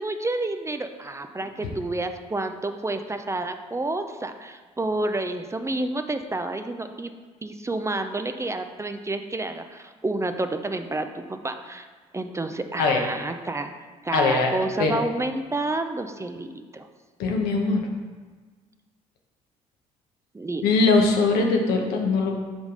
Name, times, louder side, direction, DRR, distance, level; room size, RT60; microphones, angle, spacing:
voice 1, 0.0-7.1 7.4-11.9 12.1-13.7 14.0-16.9 20.3-20.7, right 2 dB, 20° right, 7 dB, 0.5 m, -29 dB
voice 2, 14.1-14.5 14.8-15.0 17.2-17.8 20.6-22.3, left 3 dB, 75° left, 2 dB, 1.0 m, -21 dB
5.1 x 4.8 x 5.3 m, 1.4 s
hypercardioid pair, 60°, 16 cm